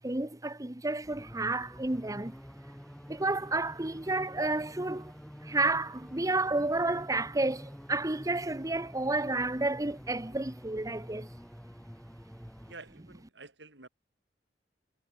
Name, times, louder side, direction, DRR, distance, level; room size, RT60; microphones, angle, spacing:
voice 1, 0.0-2.3 3.1-5.1 5.4-11.3, right 2 dB, 20° right, 1.1 m, -31 dB
sound 1, 1.0-12.7, equal, 5° left, 2.7 m, -48 dB
voice 2, 12.6-13.9, right 3 dB, 80° right, 6.1 m, -49 dB
head